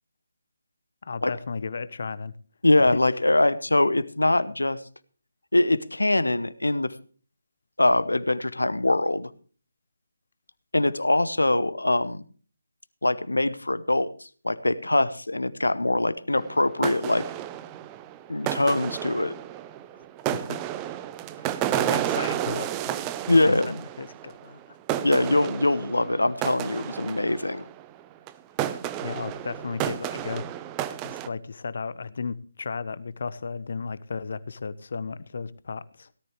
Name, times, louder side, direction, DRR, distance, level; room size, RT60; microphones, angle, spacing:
voice 1, 1.0-2.3 2.9-3.0 20.3-20.7 21.4-23.0 23.4-24.8 28.7-30.5 31.0-36.1, left 5 dB, 50° left, 18 dB, 0.9 m, -35 dB
voice 2, 2.6-4.8 5.5-6.9 7.8-9.3 10.7-12.2 13.0-14.1 14.4-17.2 18.3-19.3 23.3-23.8 25.0-27.7, left 2 dB, 75° left, 16 dB, 1.0 m, -23 dB
sound 1, 16.3-24.6 24.9-27.9 28.3-28.4 28.6-31.3, right 12 dB, 15° right, 0.7 m, -31 dB
17.5 x 13.0 x 3.2 m, 0.41 s
figure-of-eight pair, 145°, 0 cm